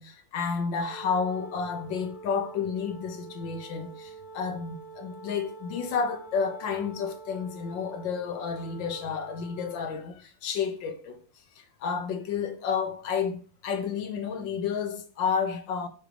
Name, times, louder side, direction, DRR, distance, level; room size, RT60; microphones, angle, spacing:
voice 1, 0.0-11.2 11.6-15.9, left 6 dB, 75° left, 1.6 m, -31 dB
Wind instrument woodwind instrument, 0.8-10.0, right 3 dB, 55° left, 1.8 m, -46 dB
6.4 x 3.1 x 4.9 m
omnidirectional pair, 2.0 m